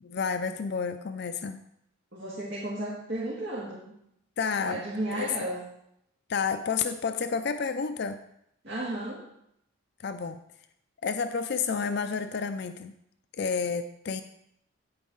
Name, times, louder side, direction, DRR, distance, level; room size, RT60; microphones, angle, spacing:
voice 1, 0.0-1.6 4.4-4.8 5.1-5.3 6.3-8.2 10.0-10.4 11.0-12.9 13.4-14.2, left 5 dB, 50° left, 9 dB, 0.4 m, -30 dB
voice 2, 2.1-3.9 4.6-5.6 8.6-9.3, right 1 dB, 55° right, -7 dB, 2.4 m, -34 dB
9.3 x 8.5 x 3.9 m, 0.76 s
head